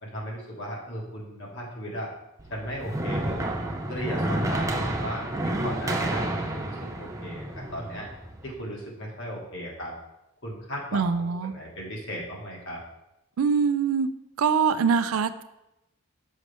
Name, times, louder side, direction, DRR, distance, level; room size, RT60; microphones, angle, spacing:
voice 1, 0.0-2.1 2.5-3.6 3.9-8.1 8.4-9.9 10.4-12.8, equal, 60° left, -2 dB, 1.6 m, -37 dB
sound 1, 2.4-8.5, right 1 dB, 15° right, 0.5 m, -30 dB
voice 2, 10.9-11.5 13.4-14.1 14.4-15.4, right 6 dB, 80° right, 12 dB, 0.4 m, -23 dB
6.3 x 5.2 x 3.4 m, 0.91 s
head